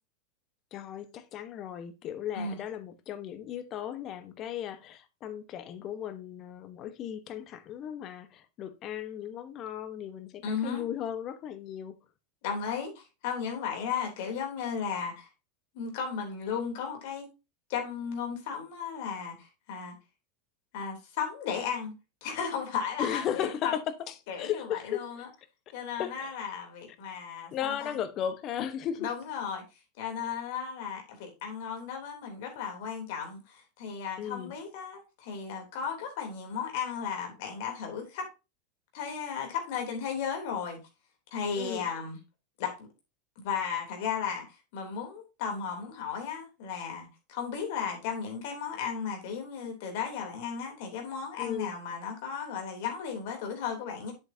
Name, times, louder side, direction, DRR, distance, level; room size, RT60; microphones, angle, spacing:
voice 1, 0.7-12.0 23.0-25.0 26.0-26.3 27.5-29.1 34.2-34.5 41.6-41.9 51.4-51.7, left 10 dB, 40° left, 1.0 m, -36 dB
voice 2, 10.4-10.8 12.4-15.3 15.7-17.3 17.7-19.9 20.7-21.9 22.2-23.7 24.3-25.3 25.7-28.0 29.0-29.6 30.0-38.3 38.9-40.8 41.3-42.2 42.6-42.9 43.4-44.4 44.7-54.1, left 6 dB, 60° left, 3.1 m, -35 dB
7.9 x 7.6 x 2.7 m
hypercardioid pair, 90°, 0 cm